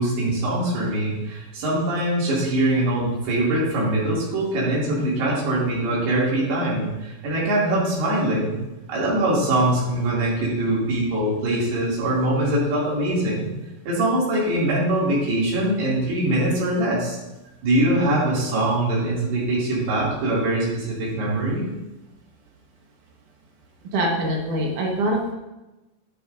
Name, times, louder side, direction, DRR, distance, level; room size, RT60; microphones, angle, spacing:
voice 1, 0.0-8.6 8.9-13.5 13.9-17.2 17.6-21.7, right 1 dB, 85° right, -7 dB, 4.6 m, -22 dB
voice 2, 23.9-25.3, right 1 dB, 65° right, 0 dB, 2.5 m, -24 dB
10.5 x 9.9 x 2.6 m, 1.0 s
omnidirectional pair, 4.5 m